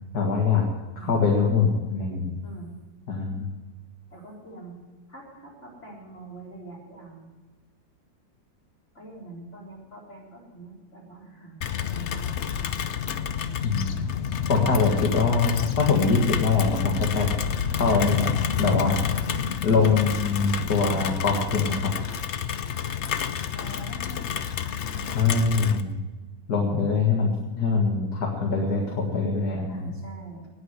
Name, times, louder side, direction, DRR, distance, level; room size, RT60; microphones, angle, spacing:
voice 1, 0.1-0.6 1.0-2.3 3.1-3.5 13.6-14.0 14.5-17.3 17.7-18.3 18.6-19.0 19.6-21.9 25.1-26.0 26.5-29.9, left 4 dB, 55° left, -1 dB, 2.4 m, -23 dB
voice 2, 0.9-1.3 2.4-2.8 4.1-4.8 5.1-7.3 8.9-12.9 23.5-24.4 24.8-25.5 28.6-29.0 29.7-30.5, right 2 dB, 35° left, -4 dB, 4.6 m, -44 dB
Rain, 11.6-25.8, left 8 dB, 80° left, 0.6 m, -29 dB
19.0 x 6.5 x 8.0 m, 1.2 s
omnidirectional pair, 2.1 m